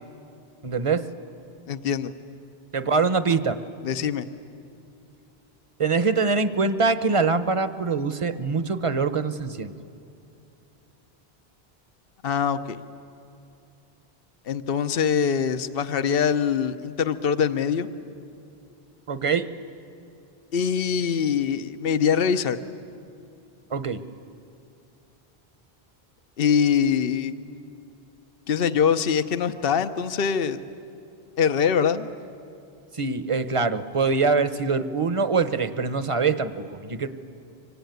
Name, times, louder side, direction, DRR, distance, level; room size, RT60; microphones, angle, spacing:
voice 1, 0.6-1.1 2.7-3.6 5.8-9.7 19.1-19.5 23.7-24.0 32.9-37.1, right 4 dB, 35° right, 12 dB, 0.9 m, -24 dB
voice 2, 1.7-2.1 3.8-4.3 12.2-12.8 14.5-17.9 20.5-22.6 26.4-27.3 28.5-30.6 31.4-32.1, left 7 dB, 65° left, 10 dB, 1.0 m, -23 dB
25.0 x 24.5 x 9.3 m, 2.6 s
omnidirectional pair, 1.0 m